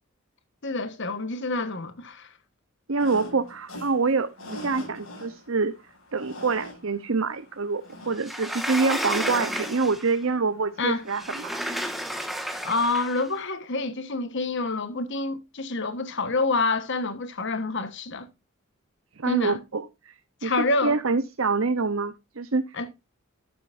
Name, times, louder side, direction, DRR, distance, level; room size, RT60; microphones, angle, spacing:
voice 1, 0.6-2.3 10.8-11.0 12.6-18.3 19.3-19.6 20.4-21.0 22.7-22.9, left 3 dB, 60° left, 1.3 m, -27 dB
voice 2, 2.9-5.7 6.1-11.6 19.2-20.1 20.4-22.8, right 4 dB, 70° right, 0.8 m, -26 dB
sound 1, 3.0-13.3, left 1 dB, 85° left, 7.3 m, -46 dB
Sliding door, 8.2-10.2 11.1-13.3, equal, ahead, 1.5 m, -32 dB
12.0 x 8.9 x 2.6 m
head